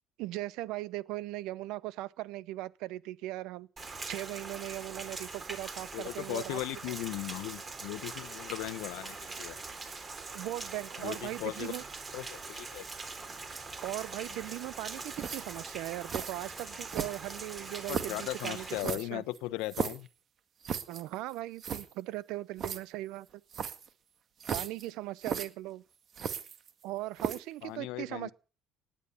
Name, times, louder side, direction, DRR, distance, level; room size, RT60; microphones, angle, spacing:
voice 1, 0.2-6.6 10.3-11.8 13.8-19.2 20.9-23.3 24.5-25.8 26.8-28.3, right 16 dB, 80° right, 0.8 m, -39 dB
Rain, 3.8-18.8, right 3 dB, 25° right, 3.9 m, -42 dB
voice 2, 5.9-9.6 11.0-11.8 12.1-12.8 17.9-20.1 27.6-28.3, left 18 dB, 85° left, 0.9 m, -38 dB
sound 1, 15.2-15.6 16.1-16.4 16.9-17.4 17.9-18.2 18.8-20.1 20.6-21.0 21.3-21.4 21.6-21.9 22.6-22.8 23.5-23.9 24.4-24.9 25.2-25.5 26.1-26.8 27.2-27.5, right 7 dB, 45° right, 1.9 m, -35 dB
18.5 x 10.0 x 7.0 m
cardioid pair, 110°, 0 cm